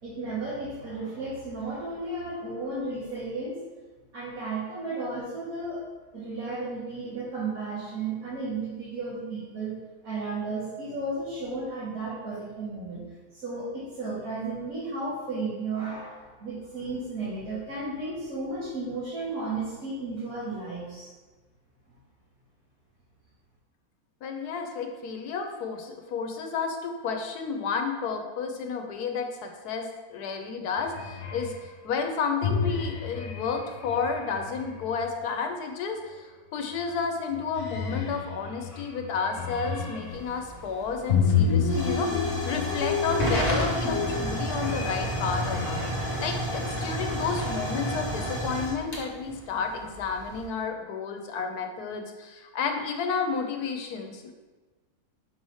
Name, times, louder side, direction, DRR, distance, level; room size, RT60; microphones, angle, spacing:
voice 1, 0.0-3.6 4.1-5.8 6.1-9.8 10.0-13.0 13.3-21.1, right 3 dB, 65° right, -10 dB, 2.2 m, -34 dB
voice 2, 24.2-31.5 31.8-54.3, left 5 dB, 85° left, 4 dB, 1.3 m, -31 dB
sound 1, 30.8-31.6 32.4-35.1 36.7-37.0 37.3-40.3 41.1-45.9, left 5 dB, 55° left, 1.2 m, -30 dB
Hiss / Fire / Tick, 40.0-50.4, equal, 25° left, 1.4 m, -32 dB
5.8 x 3.2 x 5.5 m, 1.3 s
omnidirectional pair, 1.6 m